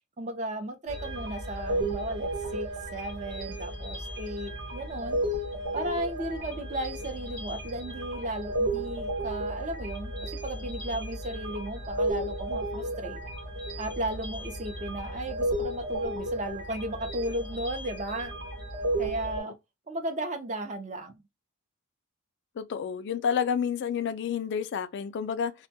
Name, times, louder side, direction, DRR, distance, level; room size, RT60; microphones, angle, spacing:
voice 1, 0.2-5.2 5.7-13.2 13.8-18.3 19.0-19.5 19.9-21.2, right 1 dB, 35° right, 0.5 m, -35 dB
sound 1, 0.9-19.4, right 1 dB, 55° right, 1.0 m, -34 dB
voice 2, 22.6-25.5, left 7 dB, 55° left, 0.3 m, -29 dB
2.2 x 2.2 x 2.6 m
head